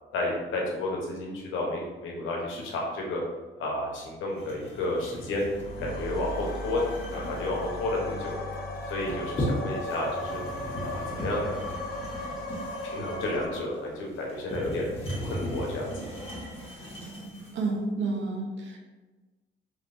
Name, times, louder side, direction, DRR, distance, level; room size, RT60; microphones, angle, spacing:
voice 1, 0.1-3.2 3.6-5.5 5.8-6.8 7.1-8.3 8.9-10.4 10.8-11.7 12.8-15.9, left 2 dB, 85° left, -2 dB, 0.9 m, -31 dB
sound 1, 4.3-17.7, equal, 30° left, 1.2 m, -37 dB
sound 2, 5.5-13.5, left 1 dB, 50° left, 0.6 m, -36 dB
voice 2, 17.5-18.8, right 3 dB, 70° right, 1 dB, 0.7 m, -30 dB
3.3 x 2.9 x 2.6 m, 1.2 s
cardioid pair, 90°, 20 cm